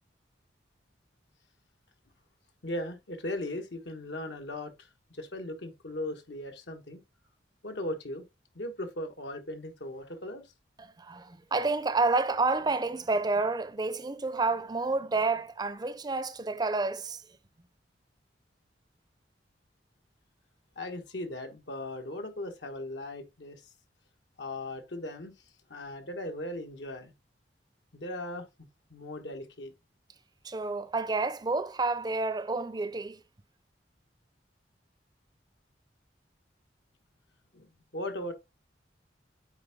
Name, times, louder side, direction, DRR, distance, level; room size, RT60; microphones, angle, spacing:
voice 1, 2.6-7.0 7.6-8.2 8.5-10.5 20.7-23.6 24.4-25.3 25.7-27.1 27.9-28.5 28.9-29.7 37.5-38.3, left 1 dB, 80° left, 1.4 m, -38 dB
voice 2, 10.8-17.2 30.4-33.2, right 3 dB, 25° right, 0.5 m, -29 dB
9.0 x 3.7 x 3.5 m
head